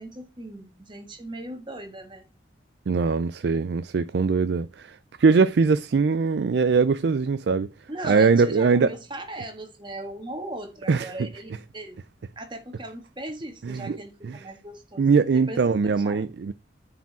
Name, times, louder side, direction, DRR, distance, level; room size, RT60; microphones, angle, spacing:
voice 1, 0.0-2.2 7.9-12.0 12.4-15.2 15.5-16.3, right 1 dB, 25° right, 1.7 m, -38 dB
voice 2, 2.9-7.7 8.0-8.9 10.9-11.1 13.6-14.0 14.2-14.3 15.0-16.5, right 4 dB, 65° right, 0.4 m, -21 dB
9.2 x 4.9 x 4.7 m
head